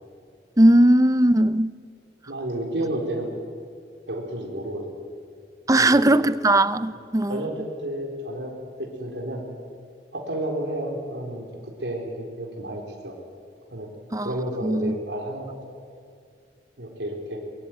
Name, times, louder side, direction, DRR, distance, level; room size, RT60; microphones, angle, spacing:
voice 1, 0.6-1.7 5.7-7.4 14.1-14.3 14.6-14.9, right 1 dB, 20° right, 0.7 m, -18 dB
voice 2, 2.3-3.3 4.1-5.0 5.8-6.1 6.9-7.0 7.3-9.4 10.1-11.5 11.8-13.2 13.7-13.9 14.2-15.6 16.8-17.4, right 1 dB, 85° right, 4.1 m, -31 dB
23.0 x 22.5 x 9.3 m
head